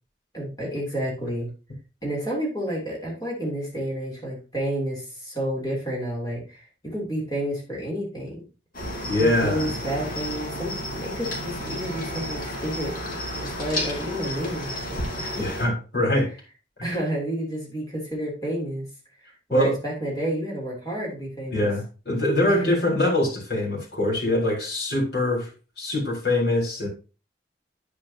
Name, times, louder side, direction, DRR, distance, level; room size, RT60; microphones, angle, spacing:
voice 1, 0.3-1.5 2.0-8.4 9.2-12.9 13.4-15.5 16.8-18.9 19.5-21.7 22.5-22.7, right 1 dB, 20° left, -3 dB, 3.1 m, -30 dB
Cricket, 8.7-15.7, left 1 dB, 50° left, 2.6 m, -32 dB
voice 2, 9.1-9.7 15.3-16.3 19.5-19.7 21.5-25.5 25.8-26.9, left 1 dB, 65° left, -3 dB, 4.2 m, -23 dB
9.6 x 7.6 x 2.8 m, 0.33 s
head